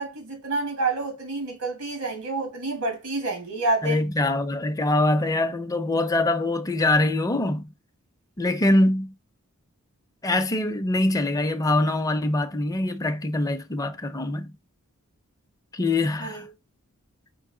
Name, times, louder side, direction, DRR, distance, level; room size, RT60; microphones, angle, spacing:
voice 1, 0.0-4.0 16.2-16.4, right 2 dB, 90° right, 1.6 m, -28 dB
voice 2, 3.8-7.7 8.4-9.1 10.2-14.5 15.7-16.5, left 2 dB, 15° left, 0.4 m, -23 dB
4.5 x 2.6 x 3.7 m
head